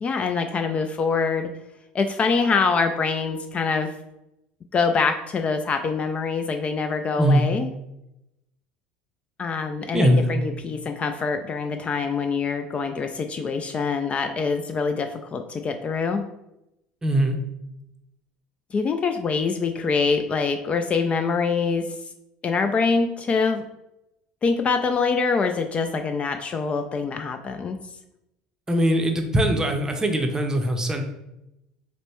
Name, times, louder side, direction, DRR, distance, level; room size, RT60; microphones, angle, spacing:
voice 1, 0.0-1.5 1.9-3.9 4.7-7.7 9.4-16.3 18.7-21.8 22.4-23.6 24.4-27.8, left 4 dB, 35° left, 7 dB, 0.3 m, -24 dB
voice 2, 9.9-10.3 17.0-17.4 28.7-31.0, equal, 15° right, 4 dB, 0.6 m, -21 dB
5.1 x 2.1 x 3.0 m, 0.87 s
supercardioid pair, 85°, 4 cm